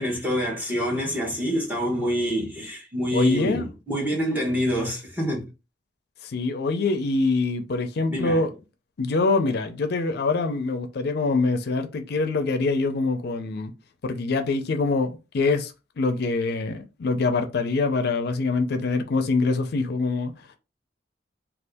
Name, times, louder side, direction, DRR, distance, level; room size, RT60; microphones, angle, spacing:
voice 1, 0.0-5.4 8.1-8.5, equal, 10° right, 0.9 m, -26 dB
voice 2, 3.1-3.7 6.2-8.5 9.0-13.7 14.0-20.3, left 3 dB, 60° left, 0.4 m, -24 dB
2.6 x 2.4 x 3.4 m
head